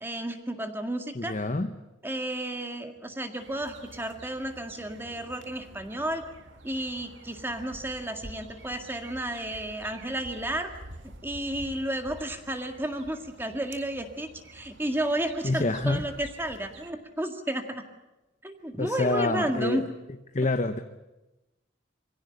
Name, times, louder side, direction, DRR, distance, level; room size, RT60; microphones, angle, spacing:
voice 1, 0.0-1.4 2.0-6.2 6.6-10.7 11.2-17.9 18.4-19.8, right 1 dB, 10° right, 5 dB, 1.8 m, -32 dB
voice 2, 1.1-1.7 15.4-16.0 18.8-19.9 20.3-20.8, left 2 dB, 40° left, 8 dB, 0.9 m, -26 dB
sound 1, 3.4-16.9, right 2 dB, 80° right, 2.0 m, -48 dB
24.0 x 16.5 x 9.9 m, 1.0 s
head